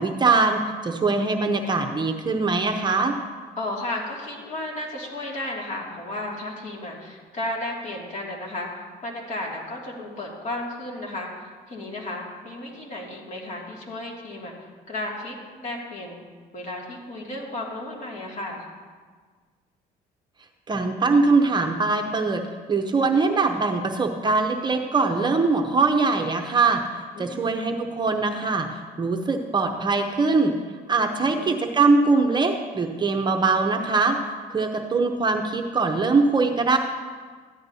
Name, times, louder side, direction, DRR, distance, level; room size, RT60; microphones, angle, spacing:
voice 1, 0.0-3.2 20.7-22.4 22.7-26.8 27.2-28.7 29.0-30.5 30.9-34.2 34.5-36.8, right 3 dB, 25° right, 4 dB, 0.7 m, -22 dB
voice 2, 3.6-14.5 14.9-16.2 16.5-18.6 27.2-27.4 31.1-31.5, left 1 dB, 45° left, -1 dB, 2.3 m, -33 dB
13.5 x 10.5 x 2.7 m, 1.5 s
cardioid pair, 110°, 17 cm